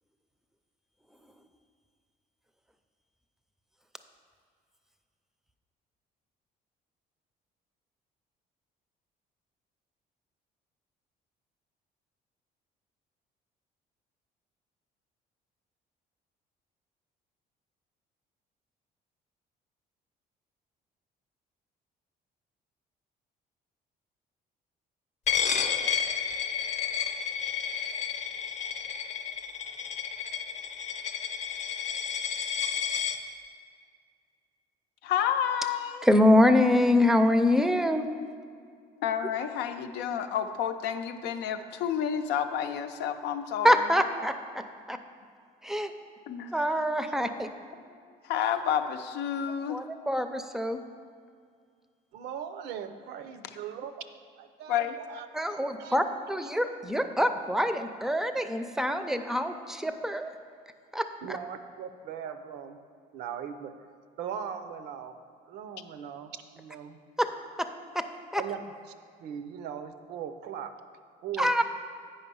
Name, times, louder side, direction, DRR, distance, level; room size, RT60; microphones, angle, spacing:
Coin (dropping), 25.3-33.2, left 7 dB, 40° left, 0.8 m, -31 dB
voice 1, 35.0-36.0 39.0-43.9 46.3-46.7 47.9-49.8 54.7-55.0, left 9 dB, 85° left, 8 dB, 0.6 m, -30 dB
voice 2, 36.0-38.0 43.6-45.0 45.6-45.9 46.5-47.5 49.7-50.8 55.3-60.3 60.9-61.4 67.2-67.3 67.6-67.7 67.9-68.0 68.3-68.4 71.4-71.6, left 1 dB, 5° right, 8 dB, 0.5 m, -25 dB
voice 3, 52.1-54.0 54.4-55.3 55.8-56.0 61.2-62.8 63.1-63.7 64.2-65.1 65.5-67.0 68.4-68.6 69.2-70.7 71.2-71.6, right 8 dB, 80° right, 9 dB, 0.6 m, -39 dB
8.7 x 5.4 x 5.4 m, 2.2 s
cardioid pair, 110°, 17 cm